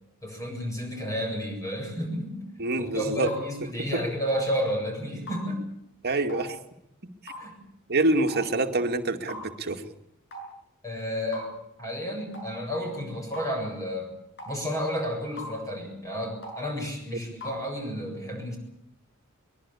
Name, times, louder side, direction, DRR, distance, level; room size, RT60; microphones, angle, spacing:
voice 1, 0.2-2.4 2.8-5.7 7.4-7.6 10.8-11.5 11.8-14.1 14.5-18.6, equal, 15° left, 2 dB, 7.8 m, -31 dB
voice 2, 2.6-3.3 3.8-4.0 6.0-6.6 7.0-7.3 7.9-9.8 17.1-17.2, right 2 dB, 45° right, 6 dB, 2.3 m, -26 dB
sound 1, 3.3-3.4 4.3-4.5 5.3-5.4 6.3-6.5 7.3-7.5 8.3-8.5 9.3-9.4 10.3-10.5 11.3-11.5 12.3-12.5 13.3-13.5 14.4-14.6 15.4-15.6 16.4-16.6 17.4-17.6, equal, 55° left, 7.7 m, -39 dB
23.5 x 21.5 x 8.6 m, 0.78 s
head